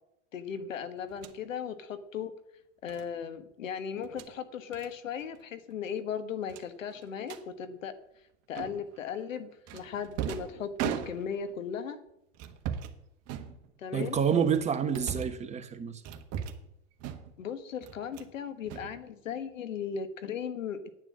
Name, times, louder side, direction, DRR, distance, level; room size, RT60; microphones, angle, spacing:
voice 1, 0.3-2.3 2.8-7.9 8.5-12.0 13.8-14.2 17.4-20.8, left 7 dB, 85° left, 1.5 m, -37 dB
sound 1, 1.1-1.4 2.9-3.1 4.0-4.3 4.7-4.9 5.2-5.4 5.7-5.8 6.5-7.4 8.6-9.0 9.7-11.5 12.3-13.0 13.3-14.0 14.5-15.4 16.0-16.7 17.0-17.5 17.8-18.3 18.6-19.5, right 9 dB, 40° right, 1.4 m, -38 dB
voice 2, 13.9-16.0, right 7 dB, 15° right, 1.3 m, -28 dB
9.8 x 9.3 x 7.5 m
hypercardioid pair, 115°, 38 cm